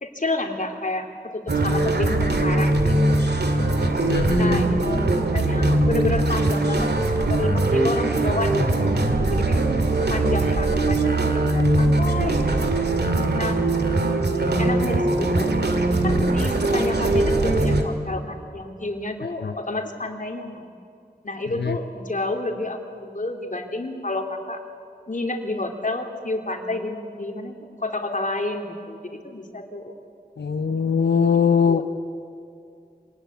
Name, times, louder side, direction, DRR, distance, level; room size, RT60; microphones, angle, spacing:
voice 1, 0.0-3.0 4.4-8.7 9.3-9.6 10.0-12.7 13.3-13.6 14.6-15.5 16.0-20.7 21.2-24.6 25.1-29.9 31.7-31.8, left 2 dB, 50° left, 3 dB, 2.8 m, -30 dB
sound 1, 1.5-17.8, right 2 dB, 75° right, 2.2 m, -21 dB
voice 2, 4.0-4.6 19.4-19.5 21.6-21.8 30.4-31.8, left 6 dB, 85° left, 7 dB, 0.8 m, -21 dB
25.5 x 18.5 x 8.4 m, 2.5 s
wide cardioid pair, 60°, 17 cm